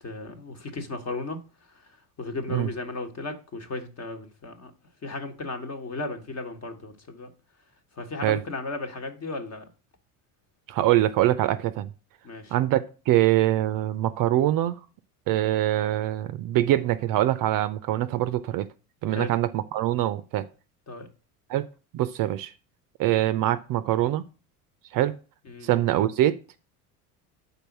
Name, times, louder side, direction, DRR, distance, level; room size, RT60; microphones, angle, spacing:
voice 1, 0.0-1.4 2.2-4.7 5.0-7.3 8.0-9.6 12.2-12.5 19.1-19.3 20.9-21.1 25.5-25.7, left 2 dB, 35° left, 1.2 m, -35 dB
voice 2, 10.7-11.9 12.5-12.8 13.1-14.8 15.3-18.7 19.0-20.4 21.5-21.6 21.9-22.5 23.0-24.2 24.9-25.1 25.6-26.4, right 14 dB, 45° right, 0.5 m, -23 dB
5.4 x 4.1 x 5.8 m
hypercardioid pair, 90°, 45 cm